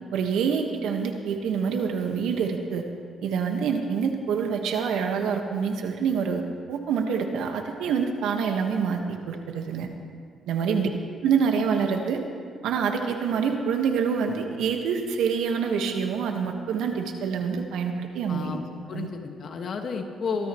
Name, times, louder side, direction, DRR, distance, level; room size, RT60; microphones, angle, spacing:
voice 1, 0.1-2.8 3.2-6.4 6.7-9.9 10.5-10.9 11.2-12.2 12.6-18.6 18.9-19.1, right 6 dB, 85° right, 4 dB, 1.5 m, -26 dB
voice 2, 10.6-10.9 18.3-18.6 18.9-20.5, left 5 dB, 55° left, 3 dB, 1.6 m, -32 dB
24.0 x 13.0 x 3.1 m, 2.1 s
cardioid pair, 90°, 0 cm